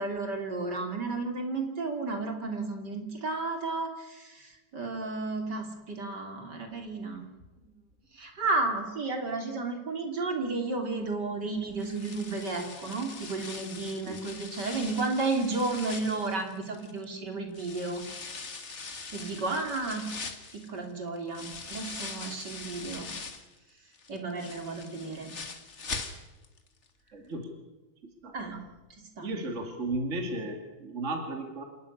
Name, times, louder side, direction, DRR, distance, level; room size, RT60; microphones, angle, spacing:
voice 1, 0.0-7.3 7.6-7.7 8.1-18.0 19.1-20.1 20.5-23.1 24.1-25.3 28.3-28.6 29.2-29.3, right 3 dB, 55° right, 3 dB, 3.5 m, -33 dB
sound 1, 11.8-17.1 17.5-23.5 23.9-26.6 26.9-27.0 27.4-27.5, left 4 dB, 35° left, 1.9 m, -42 dB
voice 2, 27.1-27.5 28.2-28.3 29.2-31.6, right 2 dB, 35° right, 4 dB, 2.7 m, -34 dB
27.5 x 11.5 x 9.9 m, 1.1 s
omnidirectional pair, 2.2 m